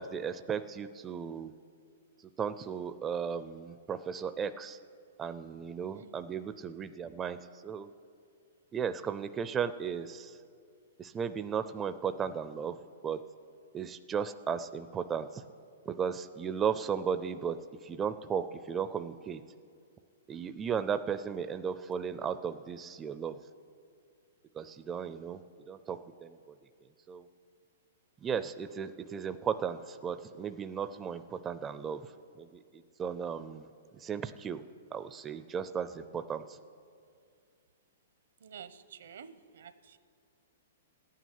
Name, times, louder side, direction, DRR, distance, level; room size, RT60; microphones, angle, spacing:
voice 1, 0.0-1.5 2.4-4.8 5.2-7.9 8.7-10.4 11.0-12.8 13.0-13.2 13.7-15.4 15.9-17.6 17.8-19.4 20.3-23.4 24.5-25.4 25.7-26.4 27.1-27.3 28.2-32.0 32.4-32.6 33.0-34.6 34.9-36.6, right 7 dB, 15° right, 12 dB, 0.4 m, -35 dB
voice 2, 38.4-40.0, right 7 dB, 80° right, 13 dB, 0.9 m, -50 dB
14.5 x 9.3 x 9.4 m, 2.3 s
hypercardioid pair, 155°, 0 cm